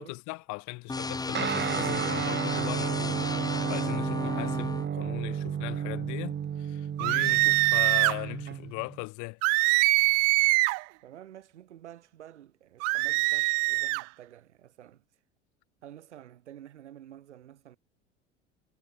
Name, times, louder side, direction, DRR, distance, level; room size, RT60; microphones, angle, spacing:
voice 1, 0.0-9.4, left 27 dB, 55° left, 7.1 m, -39 dB
sound 1, 0.9-4.9, left 3 dB, 10° left, 1.2 m, -33 dB
Guitar, 1.3-9.0, right 8 dB, 30° right, 3.5 m, -32 dB
sound 2, 7.0-8.2 9.4-10.8 12.8-14.0, right 29 dB, 45° right, 0.7 m, -23 dB
voice 2, 11.0-15.0 15.8-17.8, right 11 dB, 70° right, 7.1 m, -49 dB
figure-of-eight pair, 75°, 35 cm